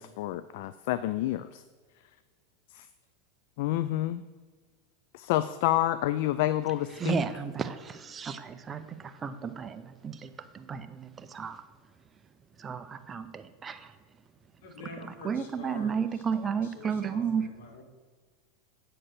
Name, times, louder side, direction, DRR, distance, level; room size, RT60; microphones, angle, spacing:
voice 1, 0.0-1.6 2.7-2.9 3.6-4.2 5.1-7.2, left 14 dB, 65° left, 13 dB, 0.3 m, -29 dB
voice 2, 7.0-11.6 12.6-13.9 15.2-17.5, right 6 dB, 20° right, 10 dB, 0.5 m, -33 dB
voice 3, 14.6-17.8, left 3 dB, 85° left, 3 dB, 1.8 m, -47 dB
8.8 x 4.3 x 6.6 m, 1.5 s
supercardioid pair, 130°, 0 cm